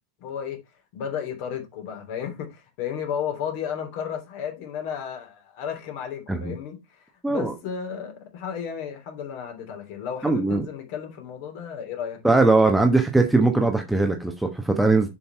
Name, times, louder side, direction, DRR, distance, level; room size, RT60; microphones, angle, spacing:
voice 1, 0.2-0.6 0.9-12.2, left 8 dB, 45° left, 3.0 m, -33 dB
voice 2, 10.2-10.6 12.2-15.1, right 3 dB, 5° right, 1.1 m, -20 dB
7.0 x 5.8 x 4.4 m
figure-of-eight pair, 90°, 0 cm